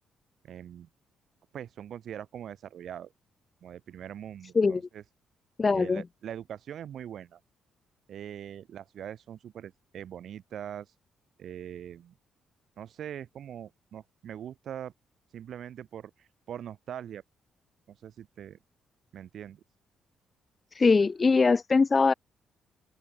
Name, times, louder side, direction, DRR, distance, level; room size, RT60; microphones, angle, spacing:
voice 1, 0.4-0.9 1.5-3.1 3.6-5.0 5.7-7.4 8.1-10.9 11.4-12.1 12.8-14.9 15.3-17.2 17.9-18.6 19.1-19.6, right 9 dB, 65° right, 3.7 m, -42 dB
voice 2, 5.6-6.0 20.7-22.1, left 4 dB, 35° left, 1.7 m, -22 dB
open air
supercardioid pair, 55°, 0 cm